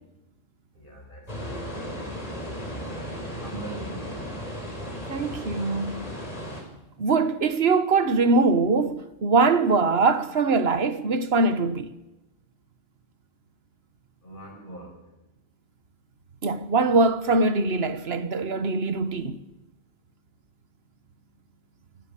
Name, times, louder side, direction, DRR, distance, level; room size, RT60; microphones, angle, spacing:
voice 1, 0.8-1.6 2.9-4.2 14.2-14.9, right 2 dB, 50° left, 7.4 m, -42 dB
sound 1, 1.3-6.6, equal, 35° left, 4.5 m, -35 dB
voice 2, 5.1-6.1 7.0-11.9 16.4-19.4, right 3 dB, 65° right, 1.5 m, -22 dB
23.5 x 17.0 x 6.9 m
omnidirectional pair, 1.1 m